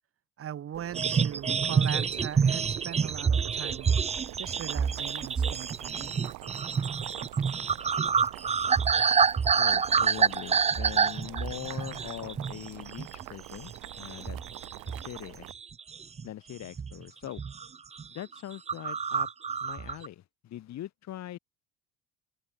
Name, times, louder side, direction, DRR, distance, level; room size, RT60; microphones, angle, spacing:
voice 1, 0.4-3.9 4.4-6.1, right 10 dB, 45° right, 3.0 m, -40 dB
Boiling, 0.7-15.5, right 22 dB, 75° right, 2.4 m, -44 dB
sound 1, 0.9-12.7 13.0-13.2 13.7-15.2 15.5-16.3 16.8-17.0 17.3-17.7 18.0-18.1 18.3-18.4 18.7-20.1, right 6 dB, 20° right, 0.7 m, -27 dB
voice 2, 9.6-14.4 14.8-15.5 16.2-17.4 18.1-19.3 19.6-21.4, left 12 dB, 55° left, 6.8 m, -42 dB
supercardioid pair, 105°, 32 cm